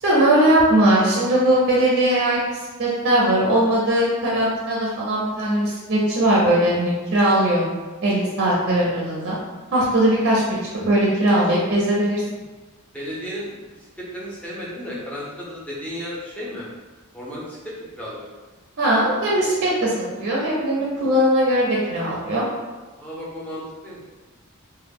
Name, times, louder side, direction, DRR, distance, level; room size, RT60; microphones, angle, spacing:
voice 1, 0.0-2.4 2.8-7.6 8.0-9.4 9.7-12.2 18.8-19.9 20.2-22.4, right 1 dB, 55° right, -5 dB, 0.5 m, -19 dB
voice 2, 12.9-16.7 17.1-18.3 23.0-24.0, equal, 5° left, -6 dB, 0.6 m, -34 dB
2.1 x 2.0 x 3.4 m, 1.2 s
head